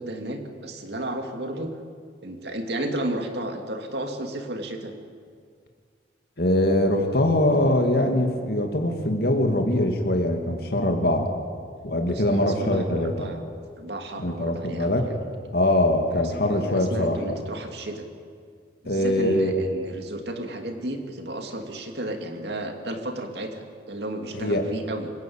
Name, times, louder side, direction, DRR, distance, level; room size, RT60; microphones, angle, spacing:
voice 1, 0.0-1.8 2.2-4.9 12.1-13.4 13.8-15.0 16.1-18.1 18.8-25.1, right 1 dB, 65° right, 4 dB, 2.6 m, -33 dB
voice 2, 6.4-11.3 11.8-13.3 14.2-15.1 15.5-17.2 18.9-19.6 24.3-24.6, left 1 dB, 60° left, 3 dB, 2.3 m, -22 dB
26.5 x 15.5 x 8.8 m, 2.1 s
head